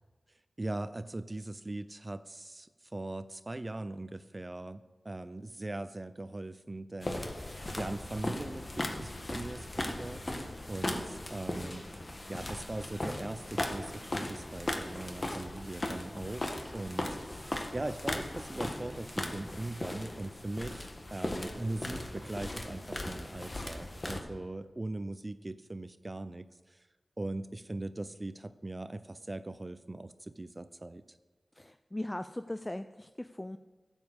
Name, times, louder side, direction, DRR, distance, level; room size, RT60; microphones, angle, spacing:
voice 1, 0.6-16.5 16.7-26.8 27.2-31.2, right 2 dB, 35° right, 12 dB, 0.6 m, -40 dB
sound 1, 7.0-24.2, left 1 dB, 40° left, 1.5 m, -38 dB
voice 2, 31.6-33.6, left 1 dB, 20° left, 10 dB, 0.4 m, -39 dB
12.0 x 7.2 x 8.1 m, 1.3 s
cardioid pair, 50°, 0 cm